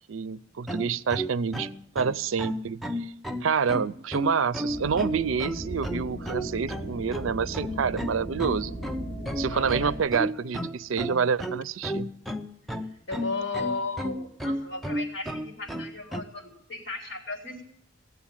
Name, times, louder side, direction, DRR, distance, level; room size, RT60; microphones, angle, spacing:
voice 1, 0.1-1.7 1.9-3.1 3.4-8.7 9.4-12.1, right 6 dB, 85° right, 17 dB, 0.5 m, -28 dB
sound 1, 0.7-16.2, equal, ahead, 0.6 m, -33 dB
sound 2, 4.7-10.0, right 1 dB, 45° left, 5.2 m, -37 dB
voice 2, 9.5-9.9 13.1-17.6, left 3 dB, 60° left, 1 dB, 3.8 m, -35 dB
17.0 x 8.0 x 8.8 m, 0.73 s
head